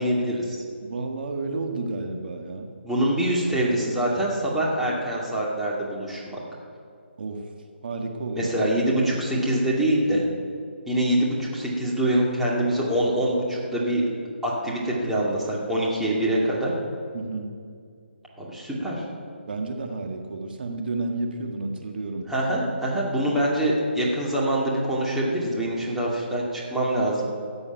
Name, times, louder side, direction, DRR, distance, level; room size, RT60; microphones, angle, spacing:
voice 1, 0.0-0.6 2.8-6.4 8.4-10.2 10.9-14.0 14.4-16.7 18.4-19.0 22.3-27.2, right 1 dB, 5° right, -6 dB, 2.4 m, -24 dB
voice 2, 0.8-2.7 7.2-7.5 7.8-8.5 17.1-17.5 19.5-22.3, right 3 dB, 55° right, 3 dB, 1.7 m, -31 dB
14.5 x 8.5 x 9.3 m, 2.3 s
figure-of-eight pair, 155°, 6 cm